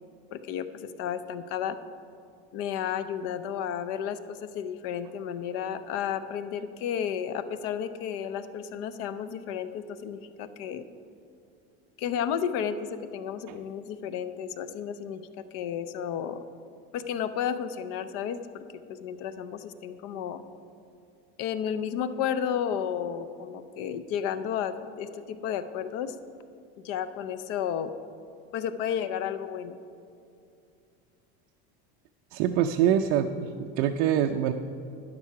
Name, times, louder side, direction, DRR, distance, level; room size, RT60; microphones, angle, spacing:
voice 1, 0.3-1.8 2.5-10.8 12.0-12.8 13.1-16.4 16.9-18.6 18.9-20.4 21.4-26.1 26.8-27.9 28.5-29.8, left 8 dB, 45° left, 12 dB, 0.6 m, -32 dB
voice 2, 32.3-34.5, right 9 dB, 50° right, 4 dB, 0.5 m, -25 dB
12.0 x 10.0 x 5.8 m, 2.5 s
cardioid pair, 175°, 32 cm